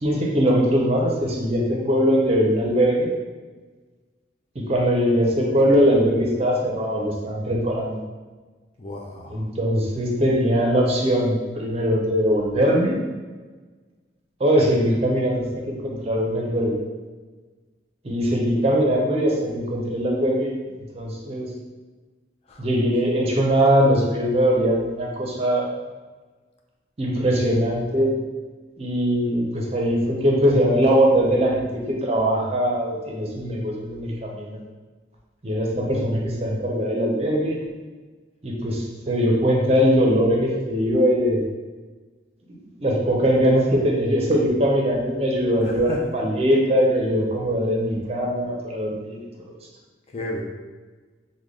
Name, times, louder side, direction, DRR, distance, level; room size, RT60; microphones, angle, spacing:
voice 1, 0.0-3.1 4.5-8.0 9.3-13.0 14.4-16.8 18.0-20.5 20.9-21.5 22.6-25.7 27.0-28.1 28.8-34.6 35.4-37.6 38.4-41.4 42.8-49.2 49.5-49.6, equal, 35° right, -2 dB, 0.5 m, -21 dB
voice 2, 8.8-9.4 22.5-22.7 45.6-46.0 50.1-50.4, left 1 dB, 35° left, 0 dB, 0.4 m, -33 dB
3.3 x 2.1 x 3.6 m, 1.3 s
head